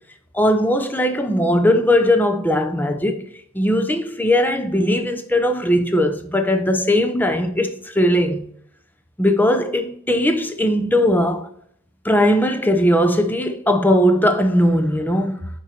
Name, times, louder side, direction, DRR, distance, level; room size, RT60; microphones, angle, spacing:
voice 1, 0.3-3.2 3.5-8.5 9.2-11.5 12.0-15.5, left 1 dB, 10° left, 0.6 m, -19 dB
6.6 x 4.6 x 4.3 m
head